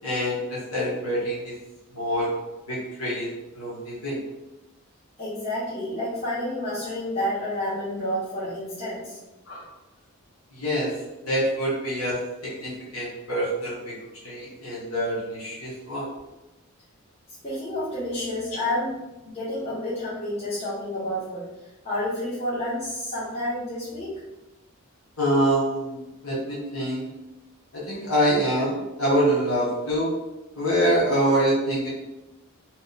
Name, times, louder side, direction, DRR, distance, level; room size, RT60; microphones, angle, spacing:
voice 1, 0.0-1.5 1.9-2.3 2.7-3.3 3.5-4.2 9.5-9.6 10.5-10.9 11.2-14.0 14.2-16.1 25.2-27.1 27.7-30.1 30.5-31.9, right 1 dB, 80° left, -7 dB, 1.0 m, -25 dB
voice 2, 5.2-9.2 17.4-19.0 19.2-21.5 21.8-24.1, left 1 dB, 30° left, -10 dB, 0.9 m, -29 dB
2.8 x 2.2 x 3.8 m, 1.0 s
head